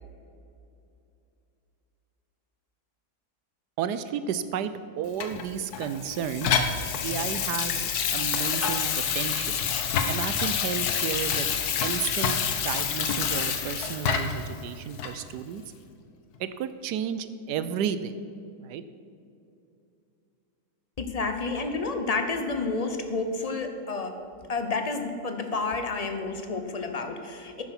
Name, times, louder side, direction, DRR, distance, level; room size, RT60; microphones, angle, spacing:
voice 1, 3.8-9.6 10.1-11.5 11.8-12.4 12.6-15.6 16.4-18.1 18.6-18.8, right 8 dB, 80° right, 12 dB, 1.2 m, -32 dB
Water tap faucet / Sink (filling or washing), 5.2-14.5 15.0-15.1, left 7 dB, 70° left, 1.4 m, -27 dB
voice 2, 21.0-24.2 24.5-27.6, left 3 dB, 35° left, 6 dB, 0.6 m, -30 dB
10.5 x 8.8 x 5.9 m, 2.6 s
omnidirectional pair, 1.8 m